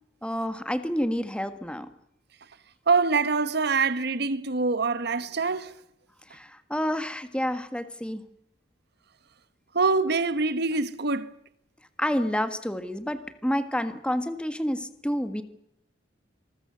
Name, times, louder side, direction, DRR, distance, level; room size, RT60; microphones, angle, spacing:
voice 1, 0.2-1.9 6.3-8.2 12.0-15.4, equal, 5° left, 1.6 m, -29 dB
voice 2, 2.9-5.7 9.7-11.3, right 4 dB, 60° right, 1.2 m, -24 dB
27.0 x 20.5 x 6.7 m
head